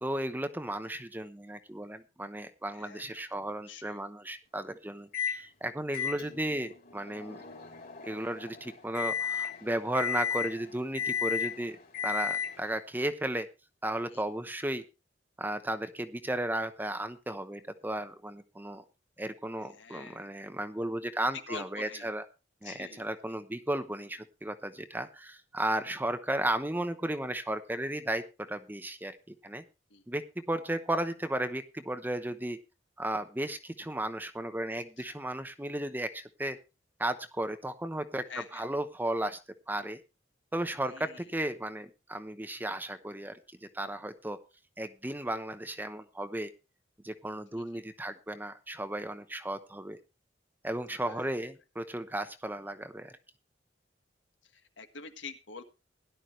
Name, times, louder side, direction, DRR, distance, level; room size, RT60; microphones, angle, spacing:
voice 1, 0.0-7.4 8.0-13.5 13.8-14.8 15.4-18.8 19.2-22.2 22.6-29.2 29.4-29.6 30.1-30.2 30.5-32.6 33.0-36.6 37.0-39.4 39.7-40.0 40.5-44.4 44.8-46.5 47.0-50.0 50.6-53.1, right 1 dB, 10° right, 10 dB, 0.9 m, -34 dB
voice 2, 2.7-3.0 3.3-4.0 14.1-14.2 19.6-20.3 21.5-22.1 22.6-23.1 29.9-30.0 38.3-38.7 40.9-41.2 47.5-47.8 51.0-51.3 54.5-55.6, left 5 dB, 75° left, 7 dB, 1.6 m, -46 dB
Microwave oven, 5.1-5.4 5.9-12.8, left 7 dB, 50° left, 3.4 m, -35 dB
17.0 x 11.0 x 3.1 m, 0.28 s
head